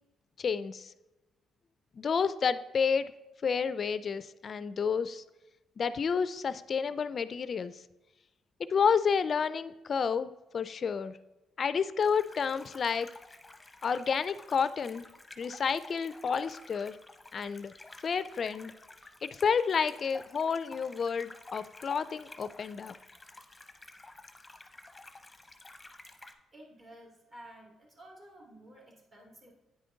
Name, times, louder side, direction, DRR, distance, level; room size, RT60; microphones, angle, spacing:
voice 1, 0.4-0.9 2.0-3.1 3.4-5.2 5.8-7.8 8.6-11.2 11.6-13.1 13.8-15.1 15.4-17.0 17.3-17.7 18.0-18.7 19.2-22.9, left 6 dB, 45° left, 14 dB, 0.3 m, -30 dB
sound 1, 12.0-26.3, left 2 dB, 15° left, 0.8 m, -51 dB
voice 2, 26.5-29.5, right 1 dB, 40° right, -1 dB, 2.7 m, -52 dB
9.2 x 5.0 x 3.8 m, 1.1 s
cardioid pair, 90°, 0 cm